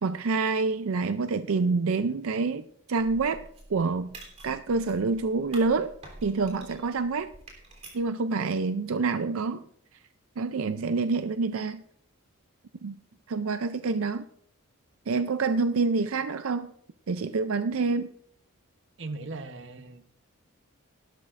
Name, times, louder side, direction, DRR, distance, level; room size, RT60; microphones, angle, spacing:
voice 1, 0.0-3.4 3.7-4.1 4.4-5.9 6.2-7.3 7.9-9.6 10.4-11.8 12.8-13.0 13.3-14.3 15.1-16.7 17.1-18.1, right 4 dB, 80° right, 11 dB, 0.5 m, -27 dB
sound 1, 3.0-8.1, right 2 dB, 30° right, 3.3 m, -48 dB
voice 2, 19.0-20.1, right 3 dB, 60° right, 9 dB, 1.0 m, -38 dB
18.0 x 12.0 x 2.5 m, 0.65 s
head